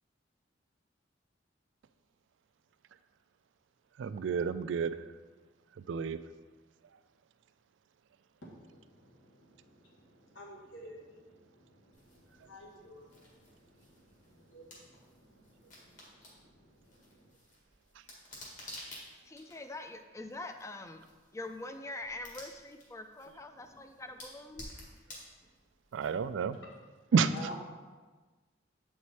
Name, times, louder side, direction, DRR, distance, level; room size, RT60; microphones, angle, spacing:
voice 1, 4.0-5.0 5.9-6.2 25.9-26.6 27.1-27.3, right 6 dB, 75° right, 13 dB, 0.3 m, -29 dB
voice 2, 8.4-17.3 27.3-27.5, equal, 90° left, -3 dB, 1.6 m, -52 dB
sound 1, 11.9-26.5, left 1 dB, 45° left, 1.8 m, -53 dB
voice 3, 19.2-21.0 21.3-24.7, left 2 dB, 15° left, 7 dB, 0.4 m, -44 dB
8.1 x 4.8 x 4.2 m, 1.3 s
head